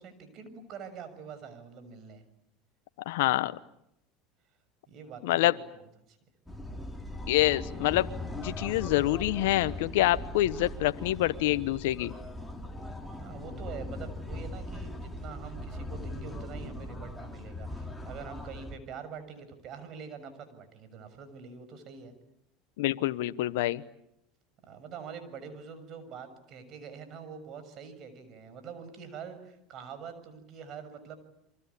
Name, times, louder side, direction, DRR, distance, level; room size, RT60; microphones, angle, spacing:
voice 1, 0.0-2.2 4.9-5.6 6.1-6.2 13.2-22.1 24.6-31.2, right 6 dB, 50° right, 11 dB, 6.7 m, -45 dB
voice 2, 3.1-3.6 5.2-5.5 7.3-8.1 8.4-12.1 22.8-23.8, left 16 dB, 75° left, 13 dB, 1.0 m, -26 dB
sound 1, 6.5-18.8, left 1 dB, 5° left, 4.2 m, -40 dB
29.0 x 24.0 x 8.4 m, 0.77 s
hypercardioid pair, 95°, 0 cm